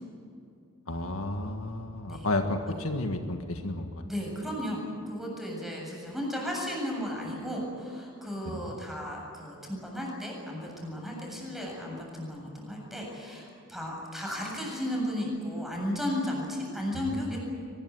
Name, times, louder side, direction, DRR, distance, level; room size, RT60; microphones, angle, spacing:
voice 1, 0.9-4.1 8.4-8.7 16.9-17.2, left 2 dB, 70° left, 5 dB, 1.7 m, -32 dB
voice 2, 4.0-17.4, equal, ahead, -1 dB, 7.7 m, -34 dB
23.5 x 21.0 x 9.6 m, 2.4 s
head